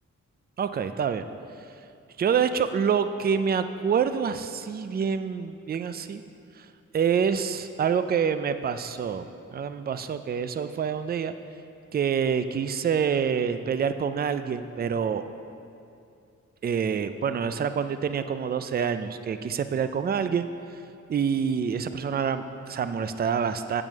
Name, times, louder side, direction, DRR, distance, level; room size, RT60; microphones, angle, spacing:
voice 1, 0.6-1.3 2.2-6.2 6.6-6.7 6.9-9.3 9.5-11.3 11.9-15.2 16.6-20.5 21.1-23.8, right 7 dB, 35° right, 10 dB, 0.4 m, -26 dB
8.6 x 6.1 x 6.5 m, 2.5 s
wide cardioid pair, 130°, 30 cm